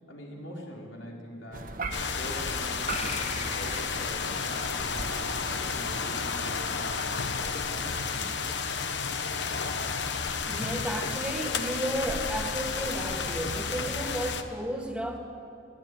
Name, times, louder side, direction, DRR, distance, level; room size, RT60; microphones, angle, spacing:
voice 1, 0.1-1.7 2.1-8.4, left 1 dB, 90° left, -1 dB, 4.4 m, -44 dB
sound 1, 1.5-8.1, right 3 dB, 45° right, 1.3 m, -40 dB
sound 2, 1.9-14.4, left 5 dB, 65° left, 1.1 m, -32 dB
sound 3, 2.9-5.9, left 2 dB, 35° left, 2.9 m, -41 dB
voice 2, 9.9-15.2, right 1 dB, 5° right, 2 dB, 2.2 m, -33 dB
20.5 x 15.0 x 9.4 m, 2.7 s
head